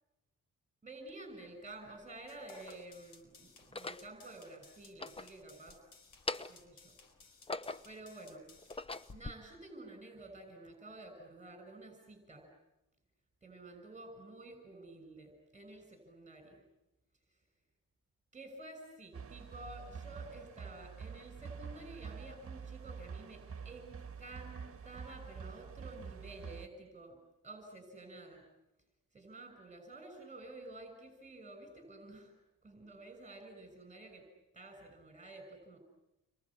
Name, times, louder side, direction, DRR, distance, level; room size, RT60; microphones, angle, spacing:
voice 1, 0.8-5.8 6.5-7.0 7.8-8.5 9.1-12.5 13.4-16.6 18.3-27.2 27.4-28.4 29.1-32.3 32.6-34.2 34.5-35.8, right 2 dB, 20° right, 5 dB, 6.4 m, -51 dB
sound 1, 1.1-1.2 2.0-2.8 3.6-4.1 4.8-5.8 6.1-6.7 7.2-8.0 8.5-9.3, left 2 dB, 15° left, 0.9 m, -42 dB
sound 2, 2.3-9.1, left 4 dB, 75° left, 4.5 m, -61 dB
sound 3, 19.1-26.7, right 6 dB, 40° right, 2.0 m, -47 dB
29.0 x 23.0 x 8.6 m, 0.95 s
cardioid pair, 100°, 34 cm